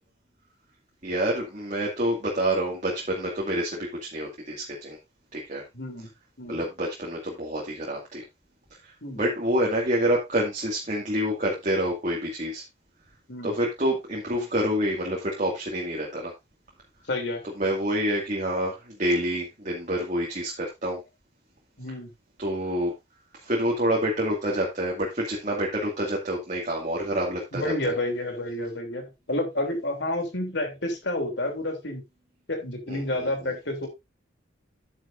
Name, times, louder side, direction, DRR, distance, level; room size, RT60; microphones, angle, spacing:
voice 1, 1.0-5.0 5.3-5.6 6.5-8.2 8.8-8.9 9.2-12.6 13.4-16.3 17.6-21.0 22.4-22.9 23.4-27.9 32.9-33.5, right 1 dB, 40° right, -2 dB, 2.2 m, -27 dB
voice 2, 5.7-6.1 6.4-6.6 9.0-9.2 13.3-13.5 17.1-17.4 21.8-22.1 27.5-32.0 32.5-33.9, left 1 dB, 60° left, 5 dB, 3.1 m, -30 dB
9.9 x 9.3 x 2.6 m, 0.21 s
head